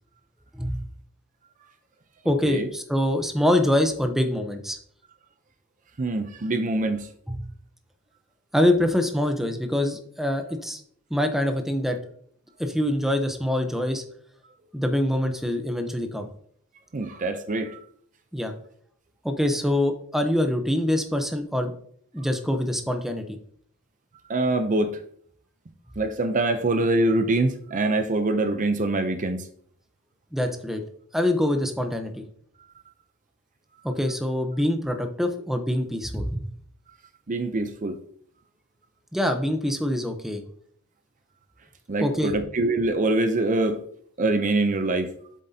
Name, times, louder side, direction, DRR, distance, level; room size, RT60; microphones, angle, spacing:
voice 1, 2.2-4.8 7.3-7.4 8.5-10.8 11.1-12.0 12.6-14.0 14.7-16.3 18.3-18.5 19.2-21.7 22.1-23.4 30.3-30.8 31.1-32.1 33.8-36.4 39.1-40.4 42.0-42.3, left 1 dB, ahead, 6 dB, 0.7 m, -24 dB
voice 2, 6.0-7.1 16.9-17.8 24.3-25.0 26.0-29.4 37.3-38.0 41.9-43.8 44.2-45.1, right 2 dB, 35° right, 9 dB, 0.5 m, -24 dB
7.6 x 7.4 x 2.8 m, 0.62 s
head